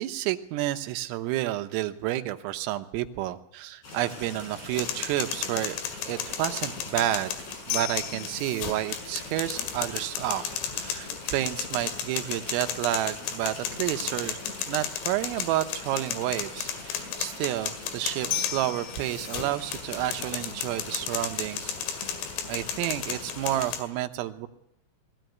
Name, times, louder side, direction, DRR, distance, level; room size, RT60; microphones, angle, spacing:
voice 1, 0.0-5.8 6.1-7.3 7.7-14.4 14.7-22.0 22.5-24.5, right 14 dB, 85° right, 8 dB, 3.7 m, -30 dB
sound 1, 3.8-23.7, left 2 dB, 35° left, 5.6 m, -43 dB
sound 2, 4.7-23.8, left 9 dB, 85° left, 4.7 m, -34 dB
20.5 x 15.5 x 9.2 m, 0.82 s
omnidirectional pair, 5.9 m